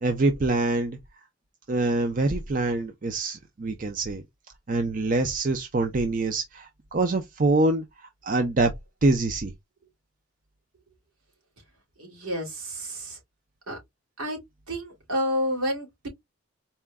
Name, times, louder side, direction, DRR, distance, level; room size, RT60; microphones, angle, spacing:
voice 1, 0.0-1.0 1.7-4.2 4.7-7.8 8.2-8.7 9.0-9.5, right 2 dB, 35° right, 0.5 m, -25 dB
voice 2, 12.0-13.2 13.7-13.8 14.2-14.4 14.7-16.1, equal, 75° right, 2.7 m, -30 dB
4.2 x 2.2 x 3.4 m
head